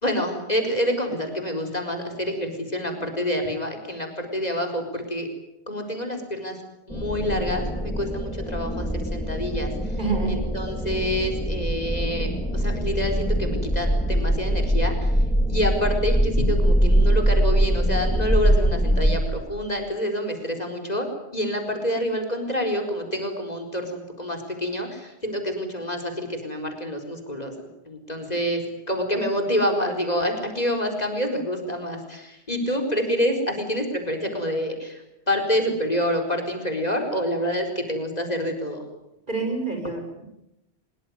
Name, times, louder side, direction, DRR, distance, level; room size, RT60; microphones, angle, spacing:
voice 1, 0.0-5.3 5.7-6.5 6.9-9.7 10.3-15.1 15.5-21.1 21.3-28.6 28.9-35.0 35.3-38.8, equal, 40° left, 4 dB, 4.7 m, -27 dB
sound 1, 6.9-19.2, equal, 5° left, 3.6 m, -23 dB
voice 2, 10.0-10.4 39.3-40.2, right 4 dB, 50° right, 3 dB, 6.7 m, -27 dB
25.0 x 22.5 x 9.5 m, 0.87 s
omnidirectional pair, 1.1 m